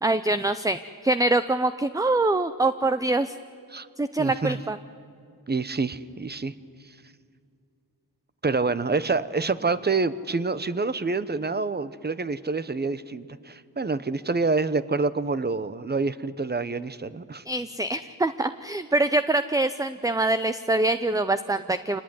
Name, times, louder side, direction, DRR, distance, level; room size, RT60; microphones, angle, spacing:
voice 1, 0.0-3.3 4.0-4.8 17.5-22.0, right 2 dB, 10° right, 12 dB, 0.6 m, -24 dB
voice 2, 4.2-4.6 5.5-6.5 8.4-17.4, right 3 dB, 25° right, 15 dB, 1.0 m, -27 dB
26.5 x 19.5 x 9.5 m, 2.4 s
cardioid pair, 90°, 37 cm